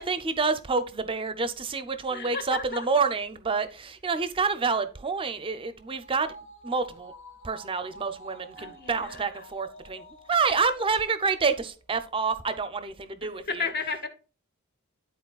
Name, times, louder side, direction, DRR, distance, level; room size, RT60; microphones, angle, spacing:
voice 1, 0.0-6.3 6.6-7.1 7.4-13.7, right 4 dB, 25° right, 0.5 m, -28 dB
voice 2, 2.1-2.9 8.6-9.3 13.5-14.1, left 4 dB, 45° left, 1.0 m, -33 dB
sound 1, 5.0-11.7 12.0-12.1, right 1 dB, 60° left, 2.0 m, -49 dB
12.0 x 4.2 x 2.3 m
head